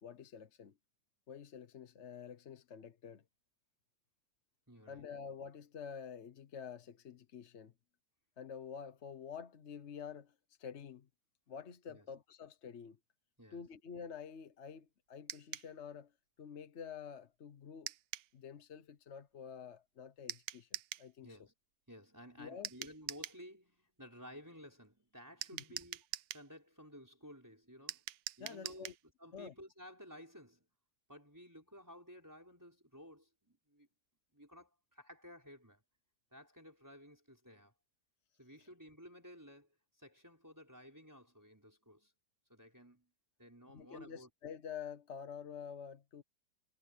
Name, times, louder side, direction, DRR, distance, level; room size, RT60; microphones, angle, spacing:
voice 1, 0.0-0.7 1.3-3.2 4.9-7.7 8.4-11.1 11.5-13.0 13.5-16.1 16.4-17.9 18.3-20.7 21.0-21.3 22.4-22.9 25.5-25.6 28.4-28.9 29.3-29.5 43.7-46.2, left 7 dB, 50° left, 1.0 m, -48 dB
voice 2, 4.7-5.1 11.9-12.1 13.4-13.7 21.2-21.5 21.9-28.0 28.4-30.7 31.1-33.9 34.3-35.8 36.3-37.7 38.4-42.1 42.5-43.1 43.4-44.3, equal, 10° right, 5.1 m, -55 dB
sound 1, 15.3-15.7 17.9-18.3 20.3-21.1 22.6-23.4 25.4-26.5 27.9-29.0, right 14 dB, 80° right, 1.3 m, -44 dB
omnidirectional pair, 1.9 m